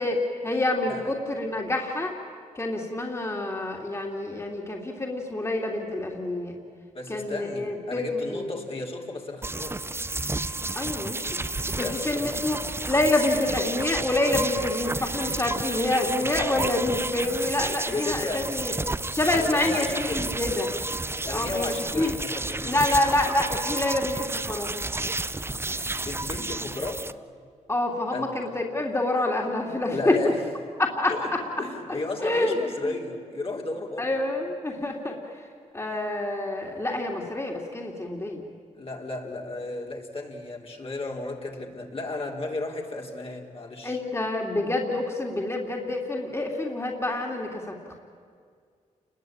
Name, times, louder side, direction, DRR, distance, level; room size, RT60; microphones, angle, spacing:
voice 1, 0.0-2.1 2.5-6.5 7.1-8.5 10.7-11.3 11.7-12.6 12.9-18.7 19.1-20.7 21.3-22.1 22.7-24.7 27.7-30.2 30.8-31.4 32.2-32.6 32.8-32.9 34.0-35.2 35.7-38.4 43.8-48.0, left 2 dB, 20° left, 0 dB, 3.2 m, -27 dB
voice 2, 6.9-9.8 11.7-12.4 16.2-16.3 17.4-17.6 17.9-18.5 19.3-20.4 21.3-22.8 26.0-27.1 28.1-28.3 29.9-30.4 31.1-34.2 35.9-36.0 38.8-44.0, left 2 dB, 45° left, -1 dB, 3.9 m, -34 dB
sound 1, 9.4-27.1, right 2 dB, 20° right, 0.7 m, -31 dB
29.5 x 21.5 x 9.0 m, 2.1 s
cardioid pair, 75°, 13 cm